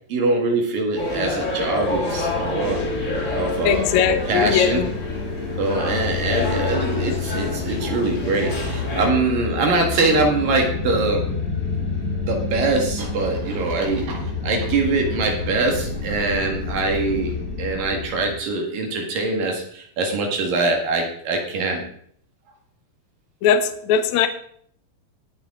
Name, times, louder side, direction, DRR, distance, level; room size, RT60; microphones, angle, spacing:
voice 1, 0.1-2.9 3.3-4.9 5.6-11.3 11.8-11.9 12.3-21.8, right 3 dB, 65° right, 2 dB, 3.5 m, -23 dB
sound 1, 0.9-18.4, left 4 dB, 20° left, 2.8 m, -29 dB
sound 2, 1.0-9.1, left 2 dB, 45° left, 0.9 m, -29 dB
voice 2, 3.6-4.9 23.4-24.3, left 8 dB, 75° left, 9 dB, 1.7 m, -19 dB
19.5 x 7.0 x 3.8 m, 0.62 s
omnidirectional pair, 4.4 m